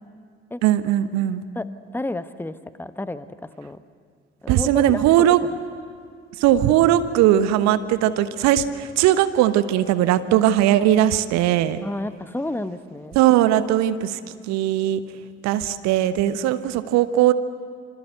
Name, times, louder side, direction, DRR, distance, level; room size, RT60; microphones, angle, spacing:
voice 1, 0.6-1.4 4.5-5.4 6.4-11.8 13.1-14.2 14.5-15.0 15.4-17.3, right 12 dB, 60° right, 13 dB, 1.1 m, -19 dB
voice 2, 1.9-3.8 4.4-5.4 11.8-13.2, left 2 dB, 5° left, 13 dB, 1.1 m, -31 dB
26.5 x 25.5 x 8.0 m, 2.1 s
figure-of-eight pair, 45°, 31 cm